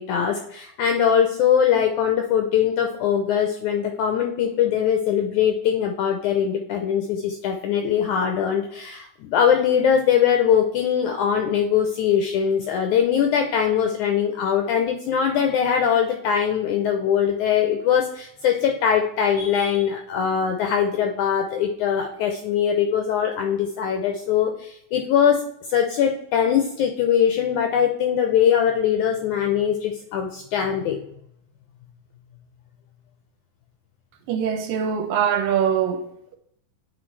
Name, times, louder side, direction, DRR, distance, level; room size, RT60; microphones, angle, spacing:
voice 1, 0.0-25.4 25.7-31.0, left 8 dB, 80° left, 1.7 m, -21 dB
voice 2, 34.3-36.4, right 8 dB, 80° right, 2.2 m, -23 dB
10.5 x 4.3 x 3.2 m
omnidirectional pair, 4.1 m